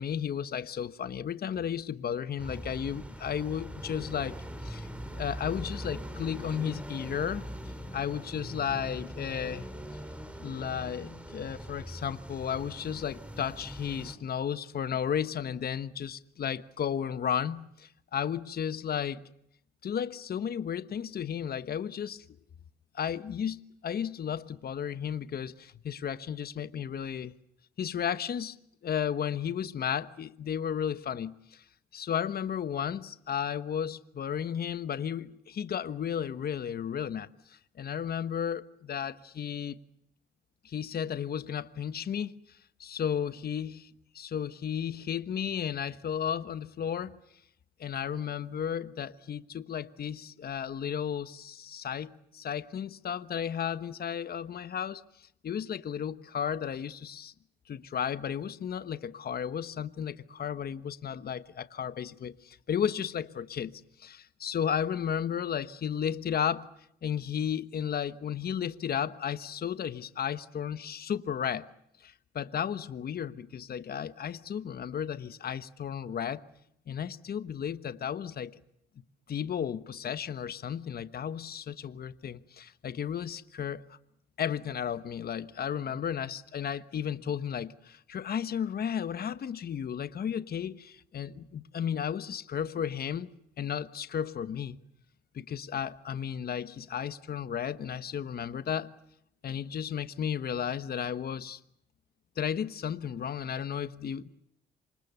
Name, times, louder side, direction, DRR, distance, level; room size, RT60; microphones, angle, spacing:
voice 1, 0.0-7.4 7.9-9.7 10.4-19.2 19.8-22.2 22.9-27.3 27.8-28.6 28.8-31.6 31.9-39.8 40.6-43.9 44.1-47.2 47.8-57.3 57.7-66.7 67.0-71.7 72.0-76.4 76.9-78.6 79.3-84.0 84.4-94.8 95.3-98.9 99.4-101.6 102.4-104.3, left 8 dB, 50° left, 1.2 m, -34 dB
sound 1, 2.4-14.2, equal, 5° right, 5.7 m, -41 dB
27.5 x 25.5 x 6.9 m
cardioid pair, 90°, 20 cm